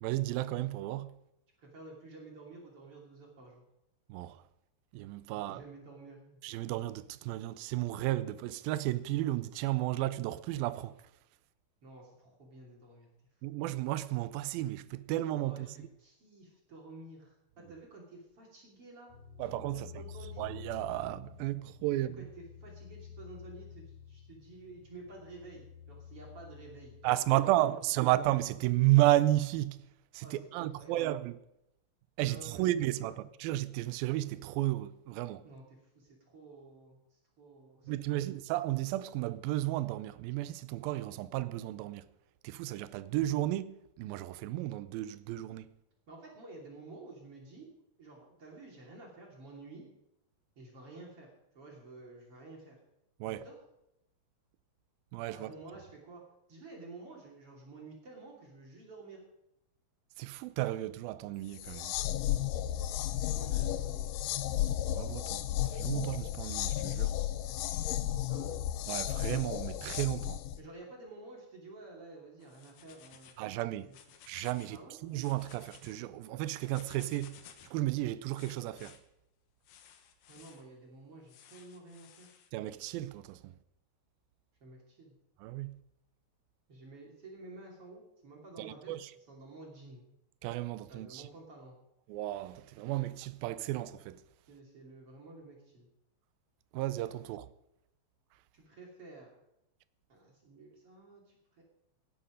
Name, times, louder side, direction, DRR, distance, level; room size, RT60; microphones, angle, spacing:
voice 1, 0.0-1.1 4.1-4.4 4.9-5.6 6.4-11.0 13.4-15.9 19.4-19.9 20.4-22.3 27.0-29.8 30.1-31.4 32.2-35.4 37.9-42.0 42.4-45.7 53.2-53.4 55.1-55.5 60.2-62.0 64.9-65.5 65.7-67.1 68.9-70.4 73.4-73.9 74.3-77.4 77.7-79.0 82.5-83.5 85.4-85.8 88.6-89.1 90.4-91.3 92.1-94.2 96.7-97.5, right 16 dB, 80° right, 2.2 m, -33 dB
voice 2, 1.6-3.6 5.5-6.4 11.8-13.1 13.5-13.6 15.4-19.1 19.4-20.5 21.9-28.1 30.2-31.1 32.2-32.7 33.0-33.2 35.4-38.3 46.1-47.7 48.0-49.9 50.6-51.3 51.5-52.8 53.2-53.6 55.3-56.2 56.5-59.2 63.3-64.1 68.2-68.6 70.6-73.3 73.8-74.0 74.7-75.0 80.3-82.3 84.6-85.1 86.7-90.1 90.9-91.7 94.5-95.9 98.5-99.3 100.1-101.6, right 2 dB, 40° right, 3.3 m, -51 dB
sound 1, 19.1-27.6, left 7 dB, 50° left, 5.4 m, -50 dB
sound 2, 61.5-70.6, left 12 dB, 85° left, 1.8 m, -33 dB
sound 3, 72.4-73.4 73.8-74.8 75.1-76.0 76.6-77.8 78.3-79.0 79.6-80.6 81.3-82.5, left 8 dB, 65° left, 2.7 m, -56 dB
18.0 x 10.5 x 5.1 m
omnidirectional pair, 4.6 m